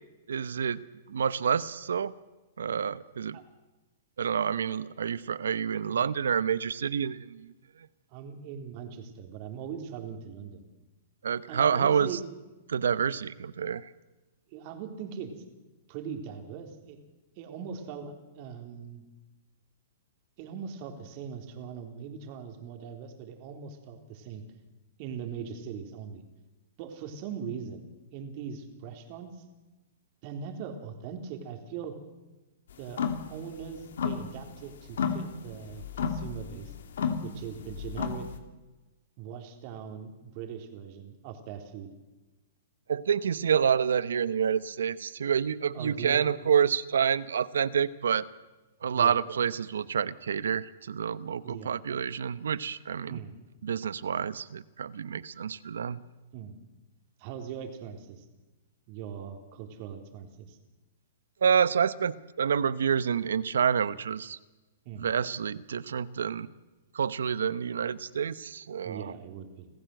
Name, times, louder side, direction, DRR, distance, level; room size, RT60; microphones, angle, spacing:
voice 1, 0.3-0.8 1.1-2.1 2.6-3.4 4.2-7.5 11.2-12.1 12.7-13.9 42.9-48.3 48.8-53.2 53.6-56.0 61.4-64.4 65.0-66.5 66.9-69.1, right 7 dB, 90° right, 17 dB, 0.9 m, -28 dB
voice 2, 8.1-10.6 11.5-12.2 14.5-15.3 15.9-17.0 17.4-19.0 20.4-24.4 25.0-26.2 26.8-29.4 30.2-31.9 32.8-33.0 33.3-36.7 37.2-38.3 39.2-41.9 45.7-46.3 48.9-49.2 51.4-51.8 53.1-53.4 56.3-56.6 57.2-58.3 58.9-60.6 64.9-65.1 68.8-69.7, right 7 dB, 40° right, 4 dB, 3.6 m, -40 dB
sound 1, 32.8-33.3 33.6-34.6 34.9-38.4, left 6 dB, 75° left, 2.5 m, -32 dB
26.0 x 15.0 x 7.9 m, 1.1 s
hypercardioid pair, 145°, 0 cm